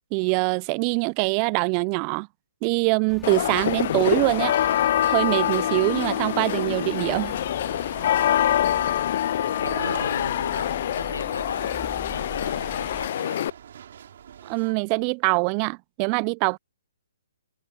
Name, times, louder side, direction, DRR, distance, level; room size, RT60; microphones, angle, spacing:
voice 1, 0.1-2.3 2.6-4.6 5.1-7.4 14.4-16.6, right 38 dB, 30° right, 0.4 m, -23 dB
sound 1, 3.1-13.1, equal, ahead, 4.5 m, -45 dB
sound 2, 3.2-13.5, left 11 dB, 50° left, 0.4 m, -25 dB
sound 3, 4.4-14.7, right 9 dB, 55° right, 4.5 m, -44 dB
voice 2, 8.1-13.5, left 4 dB, 80° left, 1.3 m, -38 dB
figure-of-eight pair, 130°, 0 cm